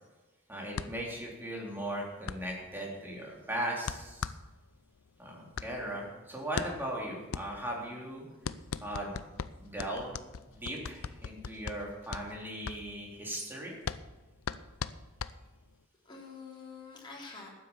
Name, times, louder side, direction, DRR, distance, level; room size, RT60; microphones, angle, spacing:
voice 1, 0.5-4.3 5.2-8.2 8.8-9.2 9.6-10.1 10.5-13.8, right 1 dB, 10° right, -3 dB, 3.5 m, -38 dB
sound 1, 0.7-15.8, left 6 dB, 80° left, 0.5 m, -41 dB
voice 2, 8.5-8.9 15.3-15.5 16.0-17.5, left 4 dB, 20° left, -4 dB, 3.8 m, -48 dB
12.5 x 9.5 x 7.0 m, 1.2 s
head